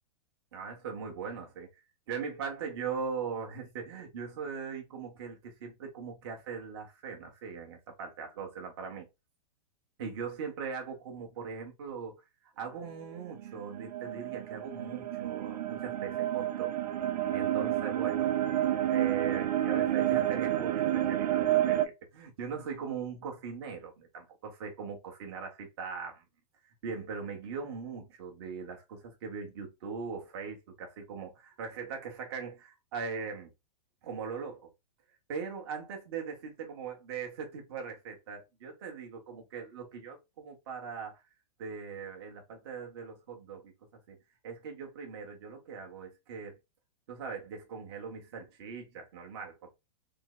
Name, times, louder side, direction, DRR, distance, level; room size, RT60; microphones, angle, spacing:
voice 1, 0.5-1.8 2.1-9.1 10.0-12.2 12.6-16.7 17.3-18.4 18.8-26.2 26.6-33.5 34.0-34.7 35.3-41.2 41.6-43.7 44.1-44.2 44.4-46.6 47.1-49.7, right 6 dB, 40° right, 1.1 m, -40 dB
sound 1, 13.2-21.9, right 12 dB, 90° right, 0.5 m, -30 dB
3.8 x 2.0 x 3.7 m
supercardioid pair, 180°, 21 cm